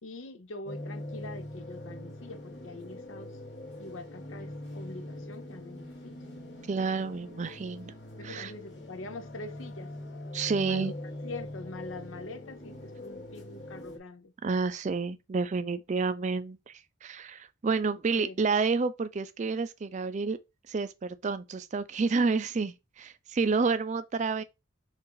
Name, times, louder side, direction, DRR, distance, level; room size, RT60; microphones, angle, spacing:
voice 1, 0.0-3.3 3.8-6.1 8.2-9.9 10.6-10.9 11.2-14.3 18.2-18.3, left 2 dB, 80° left, 0.7 m, -44 dB
sound 1, 0.7-14.0, left 1 dB, 60° left, 1.4 m, -43 dB
voice 2, 6.7-7.9 8.2-8.5 10.3-10.9 14.4-20.4 20.7-24.4, right 4 dB, 35° right, 0.3 m, -29 dB
4.6 x 2.4 x 4.7 m
head